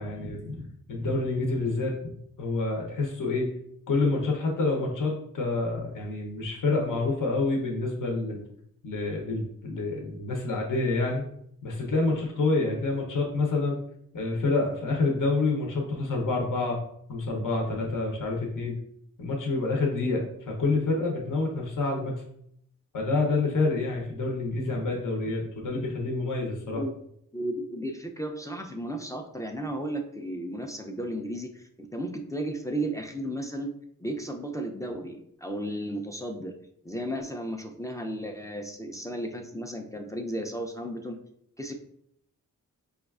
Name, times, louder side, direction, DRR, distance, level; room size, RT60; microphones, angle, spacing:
voice 1, 0.0-3.5 3.9-8.4 8.8-11.2 11.6-13.8 14.1-16.8 17.1-18.7 19.2-22.2 22.9-26.8, left 3 dB, 70° left, -1 dB, 0.7 m, -28 dB
voice 2, 27.3-33.7 34.0-36.5 36.8-41.2 41.6-41.7, right 1 dB, 10° left, 2 dB, 0.3 m, -34 dB
5.0 x 2.3 x 2.3 m, 0.70 s
wide cardioid pair, 90°, 33 cm